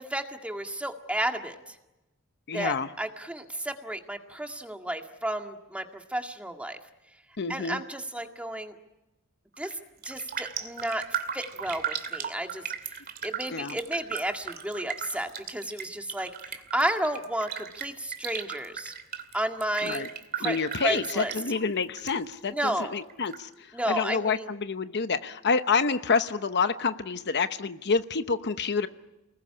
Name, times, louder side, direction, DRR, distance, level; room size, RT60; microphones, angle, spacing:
voice 1, 0.0-1.6 2.5-6.8 7.5-8.7 9.6-9.7 10.0-11.0 11.3-12.6 13.2-18.9 19.3-20.1 20.4-21.3 22.5-22.9 23.7-24.5, right 1 dB, 5° right, 4 dB, 1.9 m, -32 dB
voice 2, 2.5-2.9 7.4-7.8 13.5-13.8 19.8-20.1 20.4-28.9, left 5 dB, 55° left, 10 dB, 0.9 m, -28 dB
Raindrop, 9.5-9.8 10.0-22.1 22.4-23.4 23.8-23.9, right 8 dB, 45° right, 2.4 m, -37 dB
29.0 x 20.5 x 9.8 m, 1.0 s
head